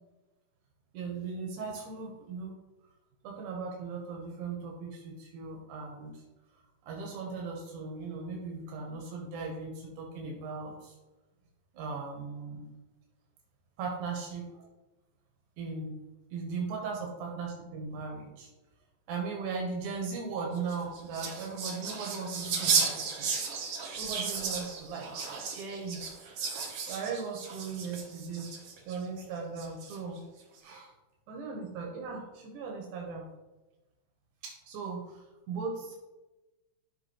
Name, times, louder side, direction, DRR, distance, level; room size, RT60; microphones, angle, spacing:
voice 1, 0.9-2.5 3.2-6.1 6.8-10.9 11.7-12.7 13.8-14.4 15.6-16.0 16.3-18.5 19.1-23.2 24.0-25.3 25.5-26.0 26.9-28.5 28.8-30.2 30.6-30.9 31.3-33.2 34.4-36.0, right 4 dB, 80° right, -1 dB, 2.7 m, -38 dB
sound 1, 20.6-29.0 29.6-30.2, right 5 dB, 60° right, 1.8 m, -34 dB
12.5 x 4.9 x 3.2 m, 1.1 s
omnidirectional pair, 3.5 m